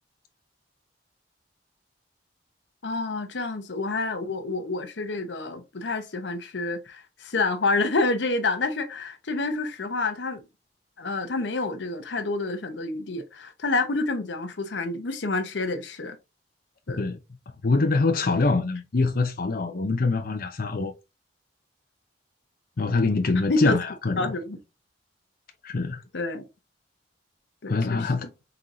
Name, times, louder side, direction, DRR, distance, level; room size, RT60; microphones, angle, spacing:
voice 1, 2.8-10.4 11.0-16.2 16.9-17.0 23.5-23.8 24.2-24.6 26.1-26.4 27.6-28.3, left 3 dB, 85° left, 0.8 m, -28 dB
voice 2, 17.6-20.9 22.8-24.3 25.6-26.0 27.7-28.3, left 3 dB, 55° left, 0.6 m, -24 dB
4.5 x 3.8 x 2.6 m
head